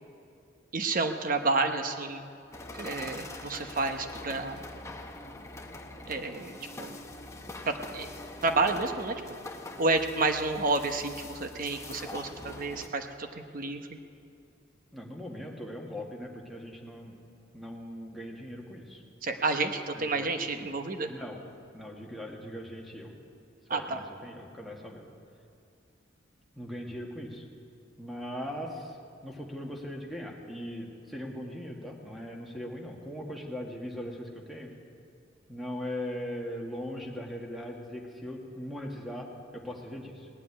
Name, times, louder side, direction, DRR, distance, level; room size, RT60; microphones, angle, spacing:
voice 1, 0.7-2.3 2.7-4.6 6.1-7.0 7.7-8.1 8.4-9.1 9.8-13.9 19.2-21.1 23.7-24.0, right 3 dB, 45° right, 7 dB, 0.9 m, -30 dB
sound 1, 2.5-12.9, left 2 dB, 15° left, 0.9 m, -44 dB
voice 2, 14.9-17.2 17.5-19.0 19.9-20.3 21.0-21.4 21.7-23.1 23.7-25.0 26.6-27.4 28.0-29.0 29.2-34.7 35.5-40.3, equal, ahead, 0 dB, 1.6 m, -39 dB
18.0 x 7.6 x 9.8 m, 2.4 s
head